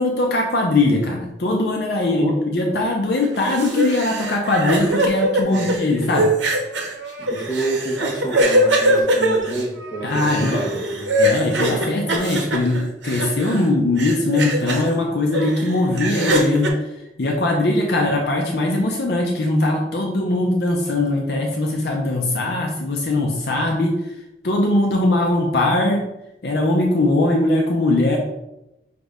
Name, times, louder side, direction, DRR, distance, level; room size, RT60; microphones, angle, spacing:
voice 1, 0.0-6.3 10.0-10.6 11.2-16.7 17.2-24.0 24.4-26.0 26.4-28.2, left 2 dB, 60° left, 0 dB, 0.6 m, -20 dB
voice 2, 2.0-2.4 5.4-5.7 7.2-11.1 18.0-18.1, right 2 dB, 25° left, -3 dB, 1.0 m, -28 dB
sound 1, 3.2-13.7 14.0-14.9 15.3-16.7, right 1 dB, 80° right, 0.7 m, -22 dB
5.1 x 2.5 x 3.4 m, 0.90 s
head